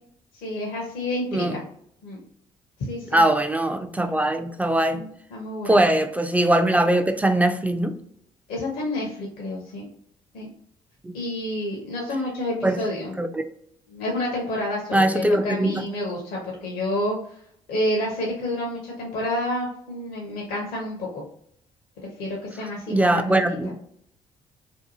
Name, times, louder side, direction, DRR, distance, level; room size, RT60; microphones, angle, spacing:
voice 1, 0.3-1.6 2.0-2.2 2.8-3.2 4.9-5.8 8.5-9.8 10.3-10.5 11.1-13.2 13.9-17.2 17.7-21.2 22.2-23.5, left 1 dB, 65° left, 0.7 m, -29 dB
voice 2, 3.1-5.0 5.6-8.0 11.0-11.1 12.6-12.8 13.2-13.4 14.9-15.9 22.9-23.8, right 1 dB, 10° right, 0.3 m, -21 dB
2.7 x 2.2 x 2.6 m
hypercardioid pair, 50°, 17 cm